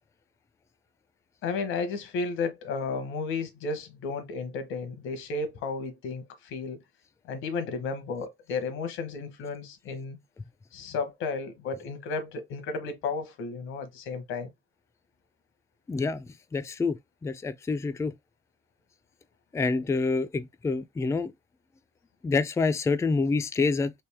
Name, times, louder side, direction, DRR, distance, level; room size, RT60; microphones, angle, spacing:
voice 1, 1.4-6.8 7.2-10.2 10.7-14.5, left 4 dB, 90° left, 1.0 m, -33 dB
voice 2, 15.9-17.0 17.2-18.1 19.5-21.3 22.2-23.9, left 4 dB, 15° left, 0.3 m, -27 dB
3.4 x 2.6 x 3.3 m
cardioid pair, 90°, 20 cm